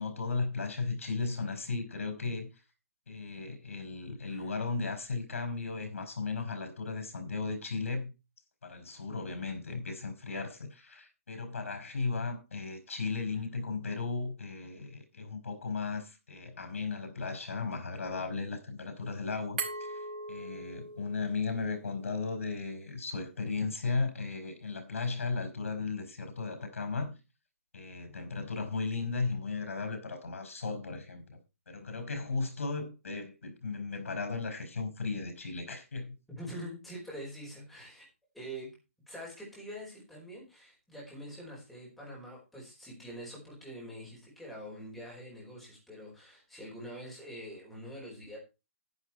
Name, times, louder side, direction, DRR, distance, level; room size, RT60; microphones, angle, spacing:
voice 1, 0.0-2.5 3.1-8.1 8.6-20.0 20.3-27.1 27.7-31.4 31.7-36.2, left 4 dB, 75° left, 5.1 m, -36 dB
Glass, 19.6-22.4, right 3 dB, 40° right, 5.0 m, -41 dB
voice 2, 36.3-38.1 38.3-38.7 39.1-48.4, equal, ahead, 5.1 m, -45 dB
11.0 x 11.0 x 4.5 m
hypercardioid pair, 180°, 7 cm